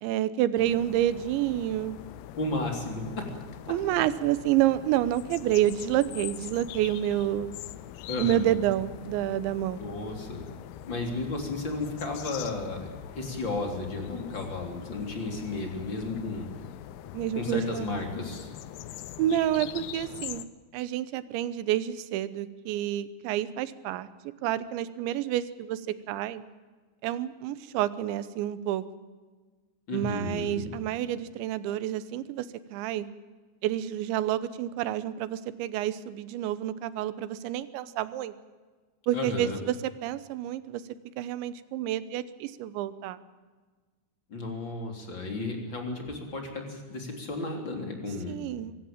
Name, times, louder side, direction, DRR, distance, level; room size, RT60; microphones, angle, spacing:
voice 1, 0.0-2.0 3.7-7.6 8.2-9.8 17.1-17.9 19.2-20.5 20.7-24.1 24.4-26.4 27.0-28.8 29.9-33.1 33.6-38.3 39.1-40.8 41.2-43.2 48.3-48.8, right 12 dB, 80° right, 15 dB, 3.1 m, -29 dB
sound 1, 0.6-20.5, left 13 dB, 75° left, 2.4 m, -43 dB
voice 2, 2.4-3.2 8.1-8.6 9.8-10.5 10.9-12.9 13.1-16.5 17.4-18.5 29.9-30.7 39.1-39.6 44.3-48.4, left 2 dB, 25° left, 3 dB, 3.6 m, -33 dB
24.0 x 15.0 x 8.9 m, 1.4 s
omnidirectional pair, 5.4 m